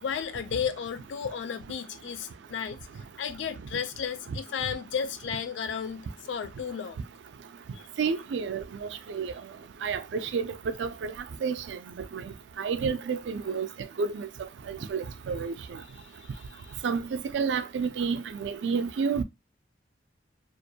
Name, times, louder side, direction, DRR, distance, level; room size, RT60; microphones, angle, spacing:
voice 1, 0.0-2.8 3.2-7.0 7.7-7.8 15.9-16.0 16.3-16.8, left 7 dB, 80° left, 0.3 m, -34 dB
voice 2, 8.0-9.3 9.8-10.5 10.8-11.1 11.4-11.8 12.1-13.7 14.0-14.3 14.7-15.5 16.8-19.2, right 5 dB, 75° right, 0.4 m, -30 dB
2.5 x 2.2 x 2.7 m
head